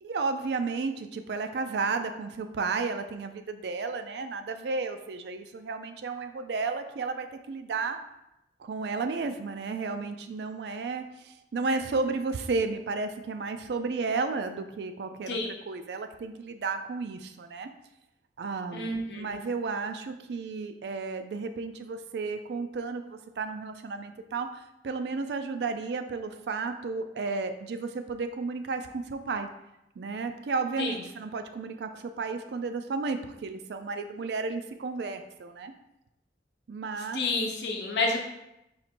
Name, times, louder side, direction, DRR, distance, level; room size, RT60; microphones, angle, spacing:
voice 1, 0.0-8.0 8.6-15.4 15.7-17.7 18.4-29.5 30.0-35.7 36.7-37.2, right 4 dB, 65° right, 8 dB, 0.4 m, -33 dB
voice 2, 18.7-19.4 30.8-31.0 37.1-38.2, left 3 dB, 70° left, 1 dB, 0.8 m, -29 dB
4.3 x 2.5 x 4.3 m, 0.88 s
head